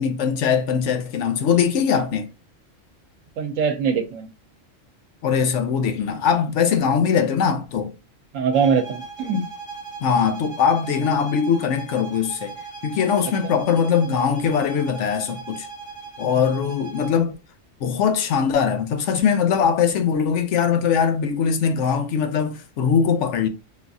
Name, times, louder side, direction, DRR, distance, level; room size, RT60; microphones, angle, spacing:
voice 1, 0.0-2.3 5.2-7.9 10.0-12.6 12.8-15.7 16.2-17.3 17.8-23.5, left 7 dB, 75° left, 0.9 m, -21 dB
voice 2, 3.4-4.3 8.3-9.5 13.4-13.5, right 6 dB, 90° right, 1.0 m, -22 dB
sound 1, 8.5-17.2, right 5 dB, 50° left, 1.4 m, -38 dB
3.8 x 2.3 x 2.6 m
omnidirectional pair, 1.3 m